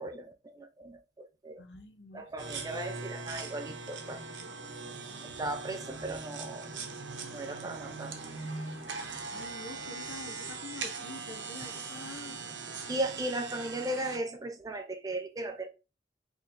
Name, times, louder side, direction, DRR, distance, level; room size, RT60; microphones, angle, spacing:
voice 1, 0.0-1.6 2.1-4.2 5.2-6.7 7.3-8.2 11.6-11.8 12.9-15.7, right 1 dB, 20° right, 0.4 m, -37 dB
voice 2, 1.6-2.2 9.3-12.4, left 3 dB, 70° left, 0.7 m, -46 dB
sound 1, 2.4-14.2, right 4 dB, 85° right, 0.7 m, -41 dB
3.9 x 3.0 x 2.5 m
head